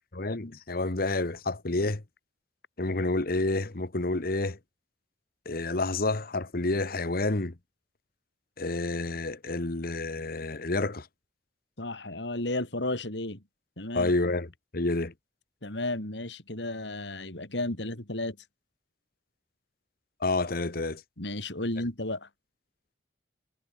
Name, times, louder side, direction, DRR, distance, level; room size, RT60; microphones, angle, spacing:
voice 1, 0.1-2.0 2.8-4.6 5.4-7.5 8.6-11.1 13.9-15.1 20.2-21.0, left 2 dB, 60° left, 1.4 m, -29 dB
voice 2, 11.8-13.4 13.8-14.1 15.6-18.4 21.2-22.3, left 2 dB, 85° left, 4.5 m, -33 dB
head